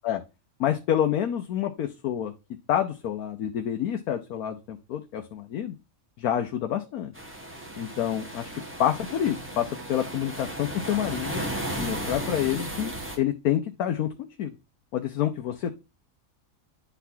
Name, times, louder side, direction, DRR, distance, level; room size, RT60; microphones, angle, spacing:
voice 1, 0.6-2.3 2.7-5.7 6.2-7.1 7.8-8.5 8.8-11.4 11.8-14.1 14.4-14.5 14.9-15.7, left 10 dB, 85° left, 5 dB, 1.2 m, -28 dB
sound 1, 7.1-13.2, right 1 dB, 10° right, 1.6 m, -35 dB
11.0 x 4.1 x 2.7 m, 0.27 s
omnidirectional pair, 1.5 m